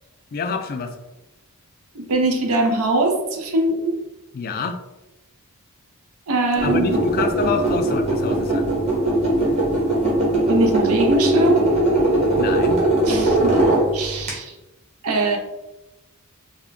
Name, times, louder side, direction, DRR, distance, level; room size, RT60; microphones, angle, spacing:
voice 1, 0.3-0.9 4.3-4.8 6.6-8.7 12.4-12.8, left 4 dB, 40° left, 7 dB, 0.3 m, -26 dB
voice 2, 2.1-4.0 6.3-7.0 10.5-11.7 13.1-14.5 15.0-15.4, right 2 dB, 75° right, 3 dB, 0.6 m, -22 dB
sound 1, 6.6-14.3, right 1 dB, 30° right, 1.0 m, -20 dB
3.5 x 2.2 x 3.4 m, 1.0 s
head